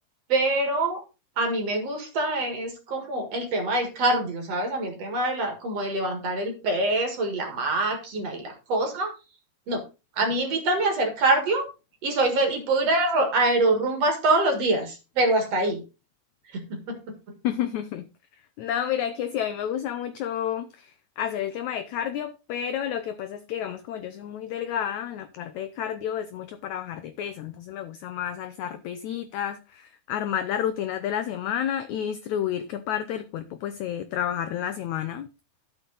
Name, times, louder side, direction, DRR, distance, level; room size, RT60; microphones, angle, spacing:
voice 1, 0.3-1.0 1.4-9.1 9.7-9.8 10.2-11.7 12.0-15.8 16.5-17.1, right 2 dB, 50° right, 2.5 m, -25 dB
voice 2, 17.4-18.1 18.6-35.3, left 10 dB, 85° left, 1.6 m, -30 dB
12.5 x 6.1 x 4.0 m
omnidirectional pair, 4.1 m